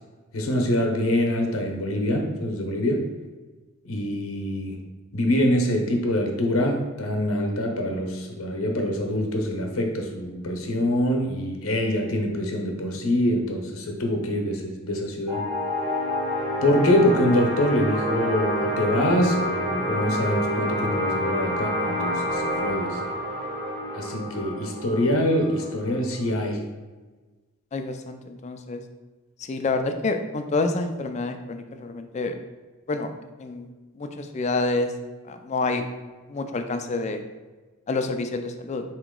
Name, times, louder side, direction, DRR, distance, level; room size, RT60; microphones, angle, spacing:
voice 1, 0.3-3.0 3.8-4.7 5.1-15.4 16.6-23.0 23.9-26.6, left 1 dB, 80° left, 2 dB, 0.8 m, -24 dB
sound 1, 15.3-26.3, equal, 35° right, 0.9 m, -28 dB
voice 2, 27.7-28.8 29.4-32.3 32.9-33.1 33.4-33.7 34.0-34.9 35.2-35.8 36.3-37.2 37.9-38.8, left 3 dB, 35° left, 7 dB, 0.3 m, -28 dB
4.4 x 2.9 x 3.7 m, 1.3 s
head